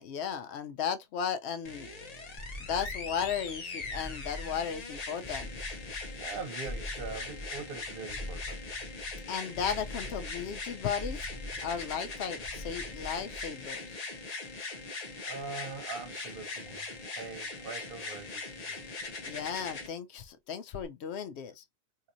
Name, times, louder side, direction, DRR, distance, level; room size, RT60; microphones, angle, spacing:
voice 1, 0.0-1.9 2.6-5.5 9.3-11.3 11.6-14.0 19.3-21.6, left 7 dB, 80° left, 0.9 m, -35 dB
sound 1, 1.6-19.9 20.8-20.9, left 3 dB, 40° left, 0.8 m, -41 dB
sound 2, 2.4-13.7, left 1 dB, ahead, 0.7 m, -44 dB
voice 2, 6.2-8.6 15.3-18.8, right 4 dB, 60° right, 0.9 m, -42 dB
4.0 x 2.8 x 2.5 m
omnidirectional pair, 1.1 m